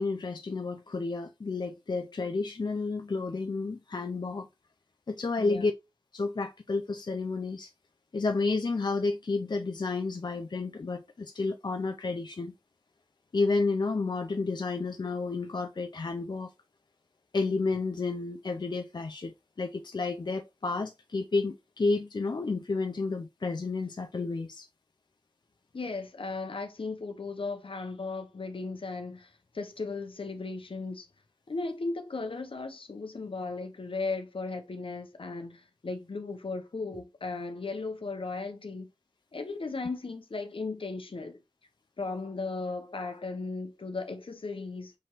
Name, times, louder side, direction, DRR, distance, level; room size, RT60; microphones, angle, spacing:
voice 1, 0.0-4.5 5.1-5.7 6.1-7.7 8.1-12.5 13.3-16.5 17.3-24.7, left 3 dB, 55° left, 0.4 m, -31 dB
voice 2, 25.7-31.1 31.5-38.9 39.3-41.4 42.0-44.9, left 3 dB, 80° left, 0.7 m, -36 dB
5.8 x 2.9 x 2.9 m
wide cardioid pair, 45°, 9 cm